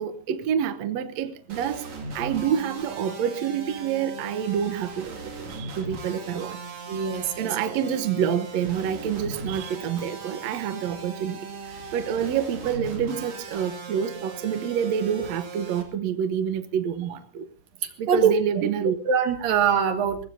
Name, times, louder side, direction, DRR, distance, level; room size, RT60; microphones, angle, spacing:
voice 1, 0.0-1.9 2.2-5.2 5.5-6.6 7.4-11.4 11.9-17.5 18.0-19.0, right 8 dB, 65° right, 2.0 m, -27 dB
sound 1, 1.5-15.8, right 3 dB, 45° right, 3.1 m, -38 dB
voice 2, 6.9-7.5 17.8-18.7 19.1-20.3, right 7 dB, 85° right, 3.6 m, -23 dB
23.5 x 19.5 x 2.8 m
omnidirectional pair, 3.9 m